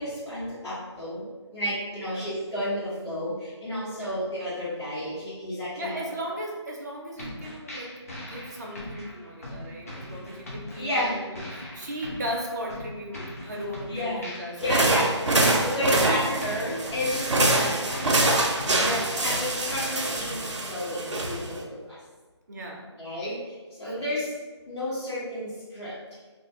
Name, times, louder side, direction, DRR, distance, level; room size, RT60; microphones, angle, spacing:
voice 1, 0.0-6.0 7.2-7.3 9.9-10.0 10.8-11.1 13.9-14.2 14.6-15.1 15.6-18.2 19.2-22.0 23.0-24.3 24.7-26.0, left 1 dB, 65° left, -11 dB, 1.1 m, -31 dB
voice 2, 5.8-14.9 15.2-16.4 18.8-19.2 22.5-22.9 23.8-24.0, equal, 35° right, -1 dB, 0.4 m, -36 dB
sound 1, 7.2-20.5, left 1 dB, 30° left, 0.5 m, -41 dB
sound 2, 14.6-21.6, right 2 dB, 90° right, 0.5 m, -25 dB
2.4 x 2.3 x 2.7 m, 1.3 s
figure-of-eight pair, 165°, 15 cm